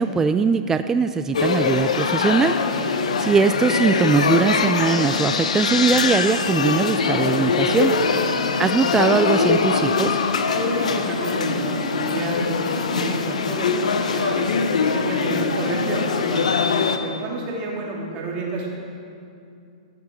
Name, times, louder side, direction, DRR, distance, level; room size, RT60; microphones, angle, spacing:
voice 1, 0.0-7.9 8.6-10.2, right 5 dB, 10° right, 10 dB, 0.3 m, -21 dB
sound 1, 1.3-17.0, left 5 dB, 80° left, 0.9 m, -22 dB
voice 2, 10.5-14.5 14.9-16.5 17.0-18.7, right 2 dB, 35° right, -3 dB, 3.2 m, -30 dB
16.0 x 7.2 x 6.3 m, 2.5 s
hypercardioid pair, 130°, 4 cm